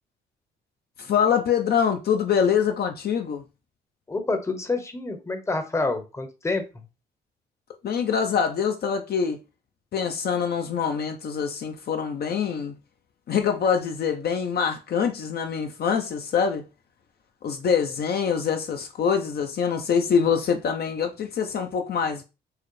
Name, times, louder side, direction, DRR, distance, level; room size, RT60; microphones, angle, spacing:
voice 1, 1.0-3.4 7.8-9.4 9.9-12.7 13.3-16.6 17.4-22.2, left 7 dB, 55° left, 0.6 m, -24 dB
voice 2, 4.1-6.6, left 3 dB, 15° left, 0.7 m, -27 dB
4.6 x 2.0 x 3.1 m
cardioid pair, 90°, 20 cm